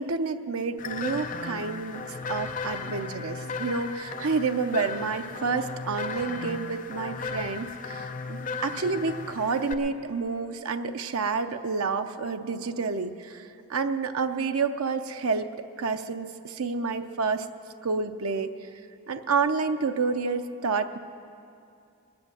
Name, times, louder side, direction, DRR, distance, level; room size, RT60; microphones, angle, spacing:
voice 1, 0.0-2.0 2.3-15.5 15.8-17.5 17.8-18.5 19.1-21.0, right 4 dB, 75° right, 8 dB, 0.6 m, -29 dB
sound 1, 0.8-9.7, left 4 dB, 35° left, 0.5 m, -35 dB
20.0 x 7.9 x 7.3 m, 2.6 s
head